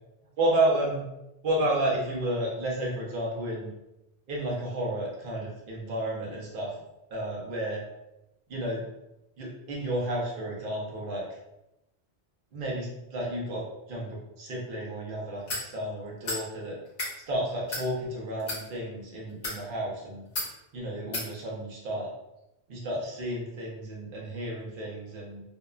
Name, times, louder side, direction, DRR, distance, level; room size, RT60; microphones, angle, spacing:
voice 1, 0.4-1.0 1.4-3.7 4.3-6.7 7.1-7.8 8.5-8.8 9.4-11.2 12.5-16.8 17.3-20.2 20.7-22.1 22.7-25.4, right 1 dB, 55° right, -4 dB, 0.8 m, -31 dB
sound 1, 15.5-15.7 16.2-16.4 16.9-17.1 17.7-17.9 18.4-18.6 19.3-19.6 20.4-20.5 21.1-21.3, left 2 dB, 50° left, 0.7 m, -32 dB
2.8 x 2.1 x 2.3 m, 0.91 s
omnidirectional pair, 1.1 m